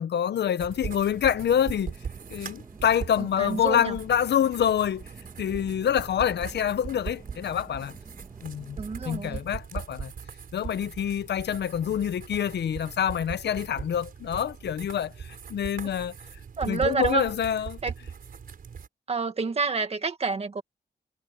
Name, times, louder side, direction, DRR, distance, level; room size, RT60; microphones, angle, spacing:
voice 1, 0.0-1.9 2.3-5.0 5.4-8.0 8.4-10.1 10.5-16.1 16.6-17.8, left 9 dB, 90° left, 0.8 m, -26 dB
sound 1, 0.6-18.9, right 6 dB, 60° right, 4.8 m, -40 dB
sound 2, 1.2-9.1, right 2 dB, 20° right, 2.0 m, -52 dB
voice 2, 3.2-4.0 8.8-9.4 15.8-15.9 16.6-17.3 17.8-17.9 19.1-20.6, right 4 dB, 35° right, 2.0 m, -28 dB
wide cardioid pair, 165°, 17 cm